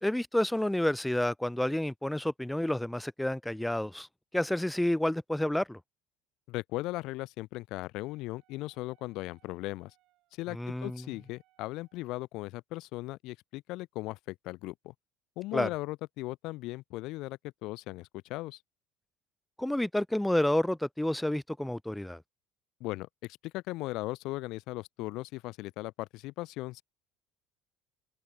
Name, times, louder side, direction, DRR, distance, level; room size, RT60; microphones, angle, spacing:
voice 1, 0.0-4.1 4.3-5.8 10.5-11.0 15.5-15.7 19.6-22.2, left 1 dB, 5° left, 0.4 m, -29 dB
voice 2, 6.5-9.9 10.4-14.9 15.4-18.6 22.8-26.8, left 19 dB, 65° left, 0.4 m, -38 dB
Wind instrument woodwind instrument, 8.0-12.2, right 18 dB, 65° right, 7.9 m, -71 dB
open air
cardioid pair, 130°, 0 cm